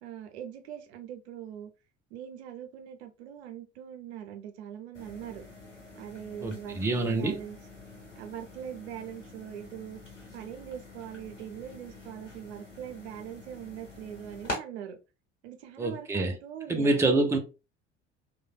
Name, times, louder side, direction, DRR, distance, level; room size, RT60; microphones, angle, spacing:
voice 1, 0.0-1.7 2.1-5.4 6.0-7.6 8.2-10.0 10.3-15.0 15.4-17.1, right 9 dB, 65° right, 0.6 m, -42 dB
sound 1, 5.0-14.6, left 1 dB, 90° left, 0.9 m, -45 dB
voice 2, 6.4-7.4 15.8-16.4 16.7-17.4, right 2 dB, 10° right, 0.5 m, -26 dB
3.1 x 2.1 x 2.2 m
figure-of-eight pair, 60°, 35 cm